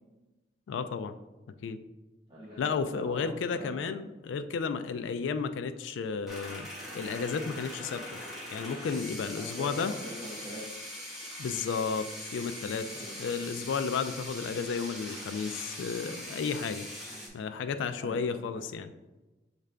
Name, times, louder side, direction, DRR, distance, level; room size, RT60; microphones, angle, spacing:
voice 1, 0.7-1.2 1.6-1.8 2.6-6.7 6.9-8.2 8.5-9.9 11.4-12.8 13.2-16.9 17.3-18.9, left 5 dB, 85° left, 10 dB, 0.3 m, -33 dB
voice 2, 2.3-4.0 9.3-10.6 12.8-13.2 17.1-17.3 18.0-18.6, equal, 25° right, -8 dB, 0.8 m, -44 dB
sound 1, 6.3-17.3, left 1 dB, ahead, 1.0 m, -42 dB
6.5 x 2.5 x 3.3 m, 1.1 s
head